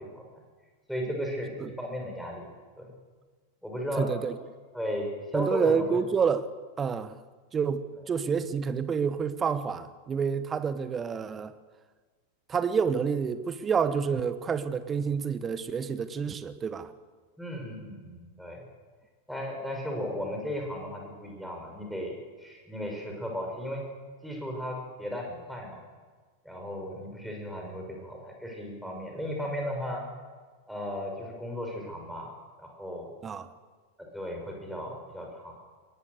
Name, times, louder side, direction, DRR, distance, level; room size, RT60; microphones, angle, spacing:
voice 1, 0.9-2.5 2.8-2.9 3.6-4.1 4.7-6.0 17.4-18.6 19.3-23.8 24.2-25.8 26.4-30.0 30.7-33.1 34.1-35.5, equal, ahead, 0 dB, 6.2 m, -35 dB
voice 2, 4.0-4.4 5.3-6.5 6.8-7.2 7.5-11.5 12.5-16.9 33.2-33.5, right 6 dB, 20° right, 13 dB, 1.2 m, -28 dB
22.0 x 18.5 x 6.7 m, 1.4 s
figure-of-eight pair, 90°, 0 cm